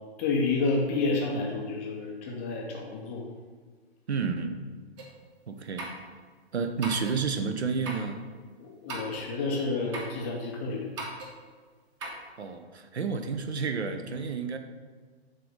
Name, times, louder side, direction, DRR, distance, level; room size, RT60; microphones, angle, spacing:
voice 1, 0.2-3.3 8.6-10.9, left 3 dB, 15° left, 0 dB, 0.4 m, -30 dB
voice 2, 4.1-4.6 5.5-5.9 6.5-8.2 12.4-14.6, right 5 dB, 75° right, 7 dB, 0.8 m, -30 dB
sound 1, 5.0-5.1 5.8-6.1 6.8-7.2 7.8-8.1 8.9-9.3 9.9-10.2 11.0-11.3 12.0-12.3, right 2 dB, 30° right, 1.0 m, -38 dB
6.6 x 3.8 x 5.2 m, 1.5 s
figure-of-eight pair, 130°, 33 cm